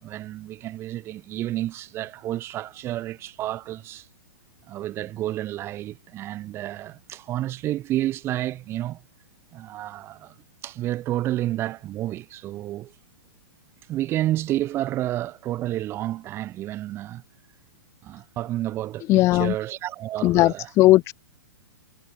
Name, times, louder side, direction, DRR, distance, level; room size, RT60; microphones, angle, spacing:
voice 1, 0.0-4.1 4.7-9.0 9.5-10.3 10.6-12.9 13.9-17.2 18.0-19.1 19.3-20.7, right 14 dB, 20° right, 3.7 m, -30 dB
voice 2, 19.1-19.6 20.2-21.1, left 17 dB, 25° left, 3.0 m, -18 dB
hypercardioid pair, 165°, 12 cm